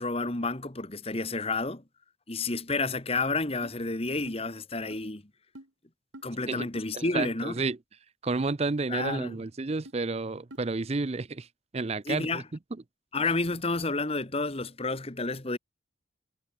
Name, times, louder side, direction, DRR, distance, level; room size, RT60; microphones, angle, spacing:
voice 1, 0.0-1.8 2.3-5.2 6.2-7.5 8.9-9.4 12.0-12.4 13.1-15.6, left 3 dB, 30° left, 1.5 m, -30 dB
sound 1, 3.6-3.8 4.3-4.4 4.9-5.0 5.5-5.7 6.1-6.3 6.7-6.9 7.6-7.7 8.4-8.5 9.1-9.3 9.8-9.9 10.5-10.6, right 1 dB, 70° right, 5.2 m, -46 dB
voice 2, 6.9-7.8 8.2-11.5 11.7-12.4, right 3 dB, 30° right, 0.5 m, -31 dB
head